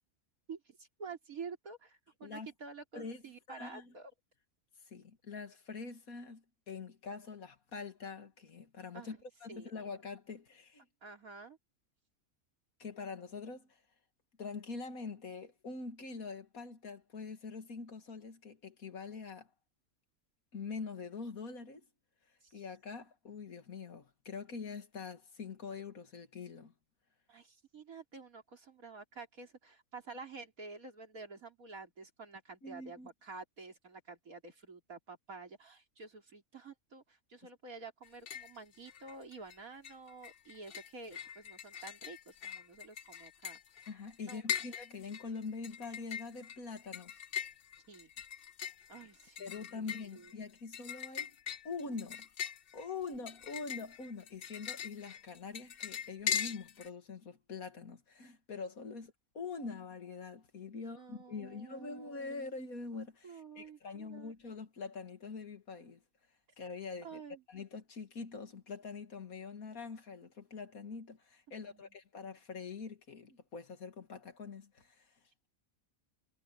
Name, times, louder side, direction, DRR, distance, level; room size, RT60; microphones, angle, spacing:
voice 1, 0.5-4.1 8.9-9.2 9.5-9.7 11.0-11.6 22.4-22.5 27.3-43.6 44.2-44.4 47.9-48.1 48.9-50.3 60.8-62.4 63.2-64.3 67.0-67.4 71.6-72.0, right 4 dB, 75° right, 3.8 m, -50 dB
voice 2, 3.5-3.9 4.9-10.8 12.8-13.8 14.4-19.5 20.5-21.9 22.5-26.7 32.6-33.1 43.9-47.2 49.4-51.3 51.6-52.3 52.7-66.0 66.6-67.2 67.5-75.1, left 4 dB, 75° left, 2.5 m, -44 dB
sound 1, 38.0-38.6 38.9-39.6 39.8-56.9, left 8 dB, 55° left, 0.7 m, -41 dB
omnidirectional pair, 1.5 m